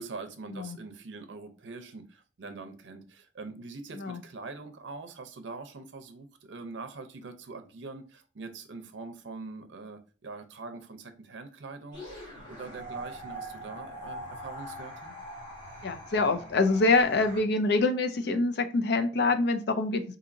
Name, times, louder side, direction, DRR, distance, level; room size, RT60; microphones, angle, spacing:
voice 1, 0.0-15.1, right 3 dB, 65° right, 8 dB, 0.5 m, -43 dB
sound 1, 11.9-17.4, right 1 dB, 25° left, 1.6 m, -42 dB
voice 2, 15.8-20.2, left 3 dB, 60° left, 8 dB, 0.4 m, -25 dB
4.0 x 2.7 x 2.5 m, 0.37 s
head